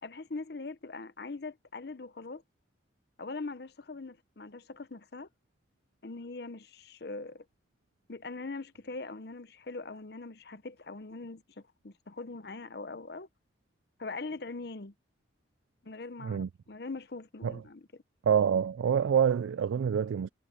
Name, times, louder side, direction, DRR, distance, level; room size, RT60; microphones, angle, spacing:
voice 1, 0.0-2.4 3.2-5.3 6.0-7.4 8.1-13.3 14.0-14.9 15.8-17.8, left 3 dB, 55° left, 0.8 m, -42 dB
voice 2, 18.2-20.3, right 8 dB, 85° right, 0.3 m, -26 dB
head